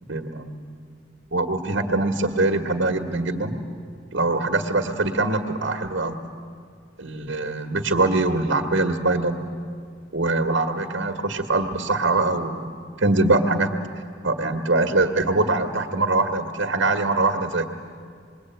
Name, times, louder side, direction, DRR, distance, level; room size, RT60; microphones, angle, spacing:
voice 1, 0.1-0.6 1.3-3.6 4.1-6.2 7.0-9.4 10.1-13.7 14.2-17.6, right 2 dB, 65° right, 3 dB, 1.6 m, -23 dB
27.0 x 21.5 x 9.2 m, 2.3 s
head